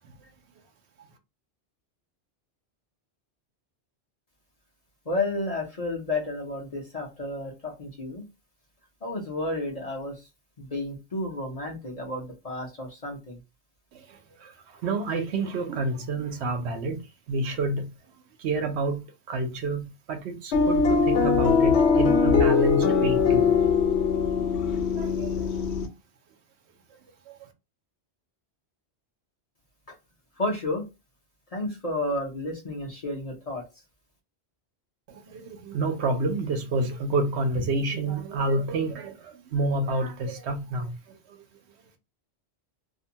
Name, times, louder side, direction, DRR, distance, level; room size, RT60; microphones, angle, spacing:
voice 1, 5.1-8.2 9.0-10.1 10.6-13.4 30.4-30.8 31.5-33.6, left 2 dB, 40° left, 0.7 m, -31 dB
voice 2, 13.9-17.0 17.3-17.9 18.4-23.5 24.9-25.8 35.1-41.4, right 2 dB, 80° right, 0.9 m, -29 dB
sound 1, 20.5-25.9, left 5 dB, 80° left, 0.8 m, -21 dB
2.5 x 2.2 x 2.7 m
omnidirectional pair, 1.1 m